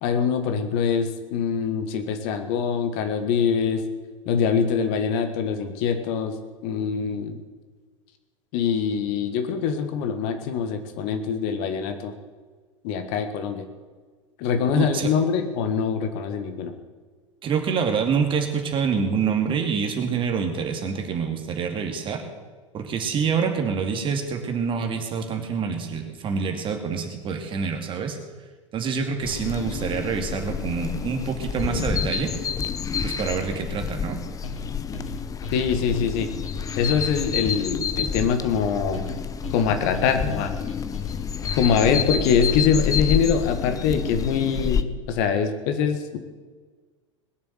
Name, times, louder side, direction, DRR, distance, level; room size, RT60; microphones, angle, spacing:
voice 1, 0.0-3.8 4.2-6.3 6.6-7.4 8.5-12.1 12.8-13.7 14.4-16.7 35.5-36.3 36.8-39.1 39.5-40.5 41.5-46.2, left 6 dB, 50° left, 8 dB, 1.6 m, -24 dB
voice 2, 14.7-15.1 17.4-22.2 22.7-28.2 28.7-32.3 33.0-34.2, right 6 dB, 30° right, 5 dB, 2.5 m, -26 dB
sound 1, 29.2-44.8, left 6 dB, 20° left, 0.8 m, -29 dB
sound 2, 34.4-42.4, left 3 dB, 80° left, 1.8 m, -38 dB
20.5 x 7.1 x 8.2 m, 1.4 s
figure-of-eight pair, 85°, 16 cm